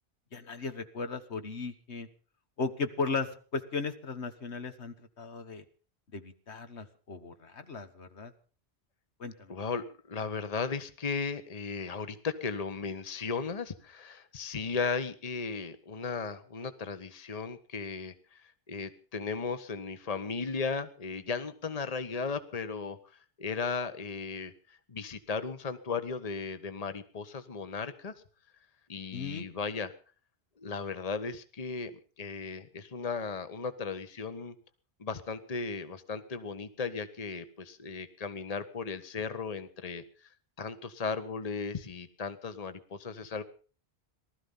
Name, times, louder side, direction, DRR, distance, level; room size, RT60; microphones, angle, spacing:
voice 1, 0.3-2.1 2.6-5.6 6.1-8.3 9.2-9.5 29.1-29.5, left 4 dB, 75° left, 9 dB, 1.7 m, -36 dB
voice 2, 9.5-23.0 23.4-28.1 28.9-29.9 30.6-31.9 32.2-34.6 35.0-40.0 40.6-43.4, left 5 dB, 35° left, 11 dB, 1.2 m, -36 dB
19.5 x 13.0 x 5.6 m, 0.40 s
omnidirectional pair, 1.1 m